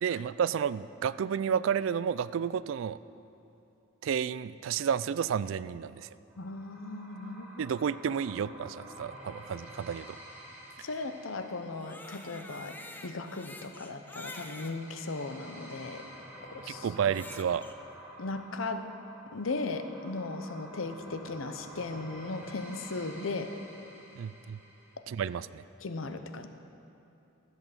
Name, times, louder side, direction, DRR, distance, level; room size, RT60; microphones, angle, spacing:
voice 1, 0.0-3.0 4.0-6.1 7.6-10.2 16.7-17.6 24.2-24.6 25.1-25.6, right 7 dB, 65° right, 17 dB, 0.3 m, -31 dB
sound 1, 6.3-25.0, equal, 10° right, 1.8 m, -50 dB
voice 2, 6.4-7.7 10.8-12.8 13.0-16.0 16.5-17.1 18.2-18.9 19.3-23.5 25.8-26.5, left 3 dB, 70° left, 8 dB, 0.8 m, -37 dB
Crying sobbing, 11.6-14.8 15.5-15.6 16.9-17.7, left 2 dB, 10° left, 0.6 m, -47 dB
14.0 x 8.2 x 6.6 m, 2.8 s
head